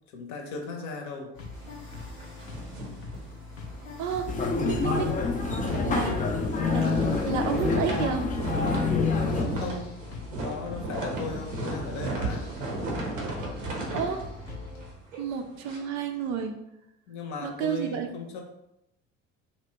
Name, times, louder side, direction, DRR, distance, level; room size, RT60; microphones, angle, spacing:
voice 1, 0.1-1.3 9.3-9.9 10.2-12.5 17.1-18.4, left 3 dB, 50° left, 1 dB, 0.8 m, -37 dB
sound 1, 1.3-14.9, left 3 dB, 85° left, 0.6 m, -42 dB
sound 2, 1.5-3.8 4.1-4.3 4.6-15.8, right 2 dB, 85° right, 0.7 m, -35 dB
sound 3, 4.3-9.4, left 4 dB, 20° left, 0.4 m, -26 dB
voice 2, 4.6-5.2 5.9-6.2 6.7-6.9 7.2-8.3 13.9-14.2 15.2-16.6 17.4-18.1, right 7 dB, 50° right, 5 dB, 0.5 m, -30 dB
2.8 x 2.1 x 3.3 m, 0.87 s
figure-of-eight pair, 60°, 37 cm